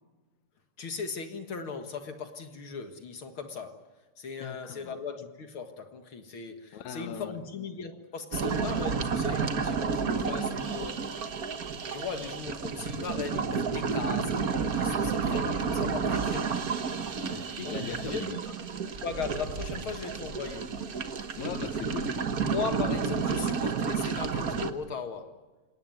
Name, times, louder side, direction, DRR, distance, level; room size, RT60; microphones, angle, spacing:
voice 1, 0.8-3.8 4.2-10.9 11.9-16.6 17.6-17.7 18.1-18.2 19.0-20.7 22.4-25.3, left 5 dB, 50° left, 7 dB, 2.0 m, -38 dB
voice 2, 4.4-5.0 6.7-7.4 10.2-10.6 17.2-18.4 21.4-22.2, left 9 dB, 65° left, 9 dB, 2.3 m, -40 dB
sound 1, 8.3-24.7, right 5 dB, 70° right, 0.8 m, -31 dB
27.5 x 18.0 x 9.3 m, 1.3 s
omnidirectional pair, 3.8 m